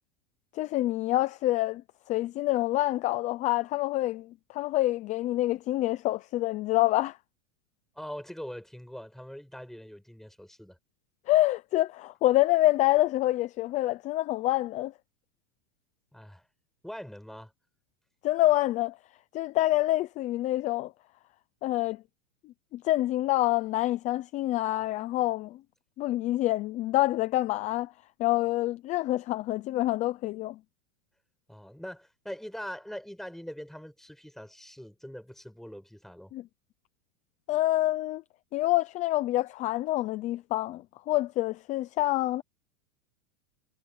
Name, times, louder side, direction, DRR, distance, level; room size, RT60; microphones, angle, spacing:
voice 1, 0.5-1.8 2.1-7.2 11.3-14.9 18.2-19.0 19.3-20.9 21.6-22.0 22.4-25.6 26.0-27.9 28.2-30.6 36.3-36.4 37.5-38.2 38.5-42.4, left 16 dB, 20° left, 0.4 m, -27 dB
voice 2, 8.0-10.8 16.1-16.5 16.8-17.5 31.5-36.3, equal, ahead, 7.1 m, -42 dB
supercardioid pair, 145°, 39 cm